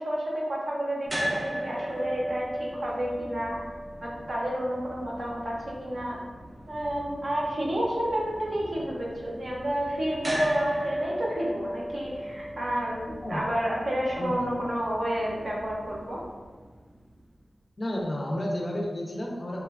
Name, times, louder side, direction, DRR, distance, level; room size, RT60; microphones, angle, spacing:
voice 1, 0.0-3.6 4.0-6.2 6.7-16.2, equal, 60° right, -4 dB, 0.6 m, -30 dB
sound 1, 1.1-17.2, equal, 20° right, 0.3 m, -37 dB
voice 2, 14.2-14.5 17.8-19.6, left 1 dB, 45° left, -2 dB, 0.4 m, -31 dB
2.9 x 2.1 x 2.4 m, 1.4 s
wide cardioid pair, 95°, 0 cm